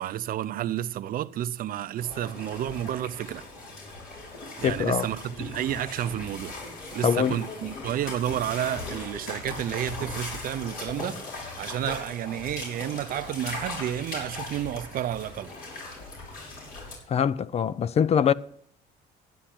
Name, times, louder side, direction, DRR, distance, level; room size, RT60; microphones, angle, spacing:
voice 1, 0.0-3.4 4.6-6.6 6.9-11.2 11.6-15.5, right 11 dB, 60° right, 0.5 m, -31 dB
sound 1, 2.0-16.9, left 2 dB, 65° left, 6.0 m, -39 dB
voice 2, 4.6-5.1 7.0-7.4 17.1-18.3, left 8 dB, 40° left, 0.4 m, -23 dB
11.5 x 10.0 x 5.9 m
cardioid pair, 110°, 17 cm